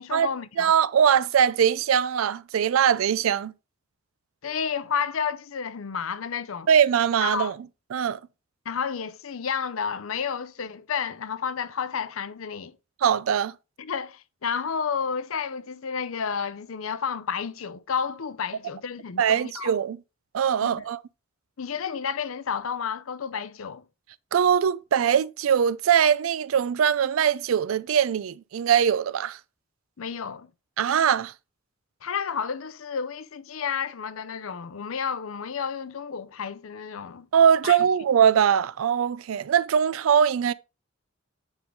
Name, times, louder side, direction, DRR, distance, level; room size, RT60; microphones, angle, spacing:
voice 1, 0.0-0.7 4.4-6.7 7.2-7.5 8.7-12.7 13.8-19.8 20.6-20.8 21.6-23.8 30.0-30.5 32.0-37.3 37.6-37.9, left 6 dB, 80° left, 0.6 m, -31 dB
voice 2, 0.6-3.5 6.7-7.5 7.9-8.2 13.0-13.5 19.2-20.0 20.3-21.0 24.3-29.4 30.8-31.3 37.3-40.5, right 8 dB, 80° right, 0.4 m, -21 dB
8.8 x 3.8 x 3.6 m
head